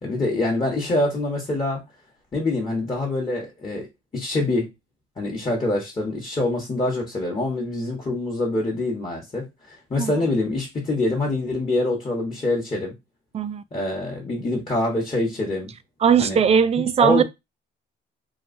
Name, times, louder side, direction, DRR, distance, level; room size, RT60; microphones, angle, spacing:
voice 1, 0.0-1.8 2.3-3.9 4.1-4.7 5.2-12.9 13.7-15.7 16.2-16.4 17.0-17.2, left 2 dB, 25° left, 1.0 m, -25 dB
voice 2, 16.0-17.2, right 7 dB, 30° right, 0.3 m, -19 dB
3.0 x 2.3 x 2.5 m
cardioid pair, 90°, 20 cm